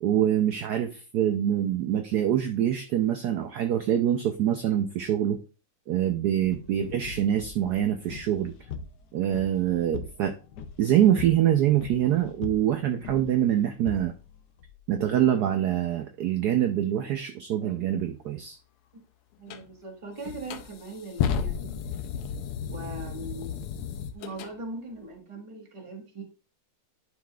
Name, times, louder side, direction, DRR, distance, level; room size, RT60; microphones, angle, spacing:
voice 1, 0.0-5.4 5.9-8.5 9.1-10.3 10.8-14.1 14.9-18.6, right 11 dB, 70° right, 6 dB, 0.9 m, -25 dB
sound 1, 6.4-15.1, left 6 dB, 70° left, 1.0 m, -42 dB
voice 2, 19.4-21.7 22.6-23.6 24.1-26.2, right 2 dB, 20° right, 2 dB, 1.1 m, -40 dB
sound 2, 19.5-19.6 20.2-24.5, left 7 dB, 85° left, 1.6 m, -32 dB
10.5 x 4.8 x 2.3 m, 0.33 s
omnidirectional pair, 2.3 m